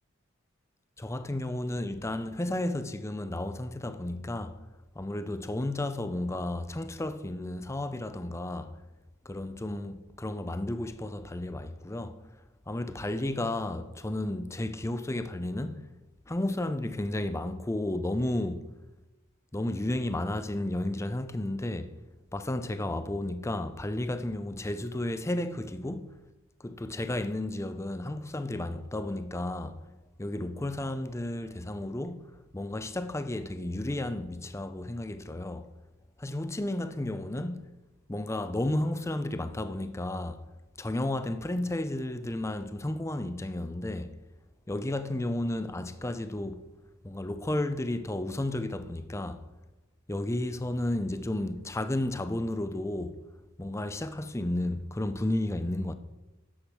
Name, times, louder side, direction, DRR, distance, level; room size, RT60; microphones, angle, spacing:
voice 1, 1.0-4.6 5.0-8.7 9.3-12.2 12.7-15.9 16.3-18.7 19.5-22.0 22.3-26.2 26.6-29.8 30.2-35.7 36.2-37.7 38.1-40.4 40.8-44.1 44.7-46.7 47.0-49.4 50.1-53.2 53.6-55.9, left 1 dB, 15° left, 0.5 m, -32 dB
10.0 x 7.3 x 6.2 m
head